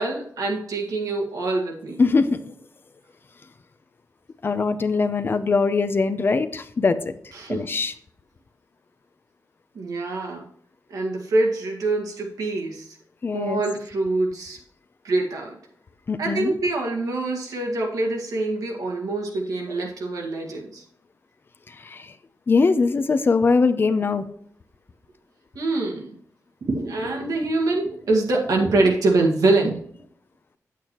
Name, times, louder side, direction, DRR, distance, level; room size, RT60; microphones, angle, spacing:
voice 1, 0.0-2.0 7.3-7.7 9.7-10.5 10.9-13.0 13.3-14.6 15.0-15.6 16.2-20.8 25.6-26.1 26.6-29.8, right 2 dB, 90° right, 0 dB, 1.9 m, -24 dB
voice 2, 2.0-2.4 4.4-7.1 7.5-7.9 13.2-13.6 16.1-16.5 21.7-22.1 22.5-24.2, left 4 dB, 35° left, 11 dB, 0.6 m, -21 dB
9.0 x 8.3 x 3.0 m, 0.63 s
wide cardioid pair, 155°, 6 cm